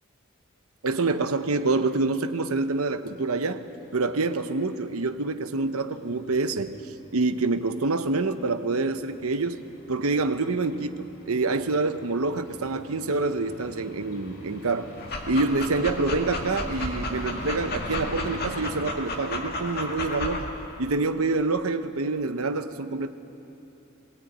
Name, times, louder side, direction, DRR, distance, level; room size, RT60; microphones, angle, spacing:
voice 1, 0.8-3.6 3.9-6.7 7.1-14.9 15.3-20.5 20.8-23.1, right 3 dB, 80° right, 9 dB, 0.9 m, -26 dB
sound 1, 1.3-18.7, left 1 dB, 70° left, 3.3 m, -45 dB
Dog, 15.0-20.4, left 2 dB, 45° left, 2.1 m, -33 dB
22.0 x 17.0 x 9.2 m, 3.0 s
head